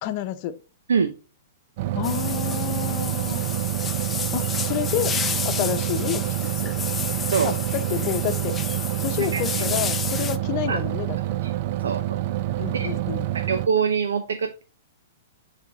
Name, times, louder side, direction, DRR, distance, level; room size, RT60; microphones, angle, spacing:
voice 1, 0.0-0.6 1.9-3.5 4.3-5.2 5.4-6.7 7.4-8.6 9.0-11.2 12.6-13.3, left 12 dB, 40° left, 0.8 m, -29 dB
sound 1, 1.8-13.7, right 14 dB, 50° right, 0.4 m, -27 dB
sound 2, 2.0-10.4, left 6 dB, 15° left, 0.6 m, -31 dB
voice 2, 7.3-7.6 9.2-9.4 10.7-10.8 11.4-11.5 11.8-12.2 12.7-12.9 13.3-14.6, right 6 dB, 85° right, 0.8 m, -24 dB
9.5 x 3.5 x 4.1 m
hypercardioid pair, 140°, 0 cm